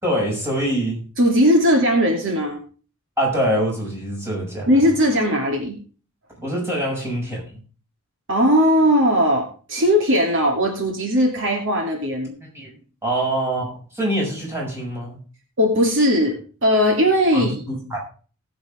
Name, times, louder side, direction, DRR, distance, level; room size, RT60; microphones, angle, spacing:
voice 1, 0.0-1.0 3.2-4.7 6.4-7.4 12.4-12.7 13.0-15.2 17.3-18.0, right 1 dB, 10° right, -3 dB, 6.6 m, -24 dB
voice 2, 1.2-2.6 4.7-5.8 8.3-12.3 15.6-16.4 16.6-17.5, equal, 60° right, 1 dB, 2.8 m, -18 dB
19.5 x 8.1 x 3.5 m, 0.38 s
head